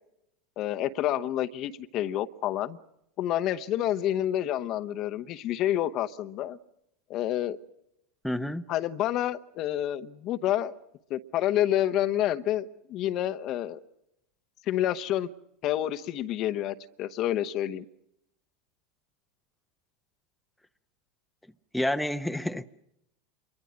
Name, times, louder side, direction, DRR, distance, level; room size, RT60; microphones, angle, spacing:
voice 1, 0.6-2.8 3.2-6.6 7.1-7.6 8.7-10.8 11.1-13.8 14.7-15.3 15.6-17.8, left 12 dB, 45° left, 0.9 m, -28 dB
voice 2, 8.2-8.6 21.7-22.7, left 1 dB, ahead, 0.8 m, -29 dB
27.0 x 23.0 x 6.2 m
figure-of-eight pair, 80°, 0 cm